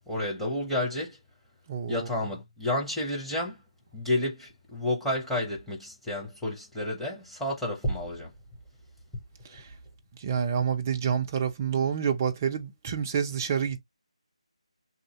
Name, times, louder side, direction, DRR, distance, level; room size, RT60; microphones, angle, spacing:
voice 1, 0.1-1.2 1.9-3.6 3.9-8.3, left 1 dB, ahead, 0.7 m, -30 dB
voice 2, 1.7-2.1 9.5-9.7 10.2-13.8, right 7 dB, 20° right, 0.3 m, -28 dB
2.7 x 2.5 x 2.7 m
figure-of-eight pair, 155°, 4 cm